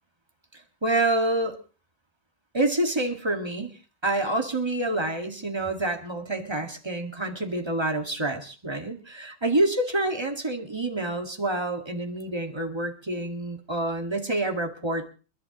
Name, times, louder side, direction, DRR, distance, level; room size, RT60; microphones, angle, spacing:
voice 1, 0.5-1.6 2.5-3.8 4.0-15.1, right 2 dB, 15° right, 4 dB, 1.6 m, -27 dB
29.5 x 11.0 x 2.9 m, 0.36 s
omnidirectional pair, 1.9 m